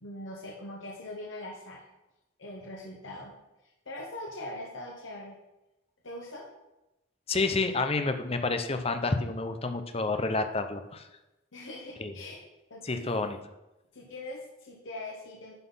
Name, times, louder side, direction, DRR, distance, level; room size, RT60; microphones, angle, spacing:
voice 1, 0.0-1.8 2.4-3.4 3.8-5.4 6.0-6.4 11.5-12.4 12.7-13.2 13.9-15.6, left 1 dB, 85° left, -2 dB, 1.3 m, -41 dB
voice 2, 7.3-11.1 12.0-12.1 12.8-13.4, left 3 dB, 30° left, 8 dB, 0.7 m, -29 dB
11.0 x 4.2 x 5.6 m, 0.97 s
head